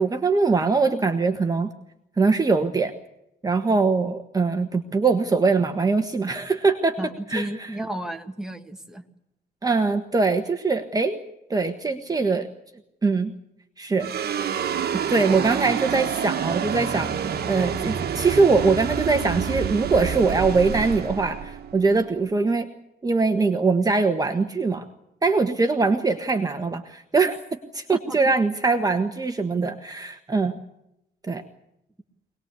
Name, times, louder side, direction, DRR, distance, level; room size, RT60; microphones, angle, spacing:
voice 1, 0.0-1.7 2.2-2.9 3.4-7.0 7.3-7.7 9.6-11.2 11.5-12.5 13.0-13.3 13.8-14.1 15.1-17.1 17.5-22.7 23.0-24.9 25.2-27.4 27.7-30.6 31.3-31.4, right 4 dB, 20° right, 6 dB, 1.4 m, -22 dB
voice 2, 7.0-9.0 28.1-28.3, right 1 dB, 5° right, 4 dB, 2.0 m, -33 dB
sound 1, 14.0-22.5, right 8 dB, 70° right, 1.5 m, -28 dB
24.5 x 19.5 x 8.3 m, 0.84 s
wide cardioid pair, 140°, 17 cm